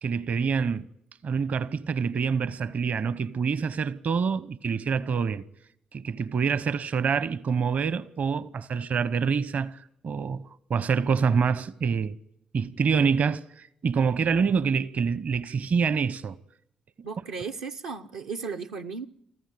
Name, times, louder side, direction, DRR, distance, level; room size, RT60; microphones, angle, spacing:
voice 1, 0.0-0.9 1.2-5.4 5.9-12.2 12.5-16.4, right 6 dB, 50° right, 0.9 m, -26 dB
voice 2, 17.0-19.1, right 5 dB, 75° right, 0.8 m, -35 dB
25.0 x 14.5 x 9.2 m
figure-of-eight pair, 45°, 3 cm